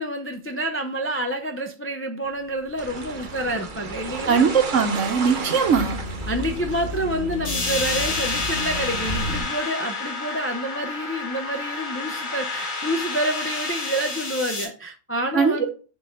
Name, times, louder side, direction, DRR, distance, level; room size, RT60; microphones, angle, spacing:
voice 1, 0.0-4.5 5.4-5.6 6.3-15.7, right 1 dB, 20° left, 0.3 m, -28 dB
sound 1, 2.4-9.4, equal, 55° left, 1.7 m, -34 dB
sound 2, 2.8-8.5, right 4 dB, 45° right, 0.9 m, -35 dB
voice 2, 4.3-6.0 15.3-15.7, right 6 dB, 70° right, 1.2 m, -20 dB
sound 3, 7.4-14.6, left 3 dB, 85° left, 2.2 m, -29 dB
6.9 x 4.1 x 3.5 m
omnidirectional pair, 1.3 m